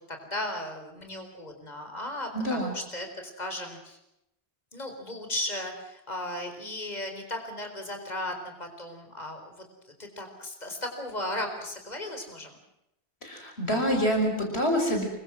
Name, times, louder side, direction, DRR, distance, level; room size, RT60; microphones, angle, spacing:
voice 1, 0.0-4.0 4.7-12.6, left 1 dB, 40° left, 5 dB, 4.6 m, -36 dB
voice 2, 2.3-2.7 13.2-15.1, equal, 80° left, 3 dB, 5.8 m, -26 dB
27.5 x 24.5 x 6.1 m, 0.85 s
omnidirectional pair, 1.1 m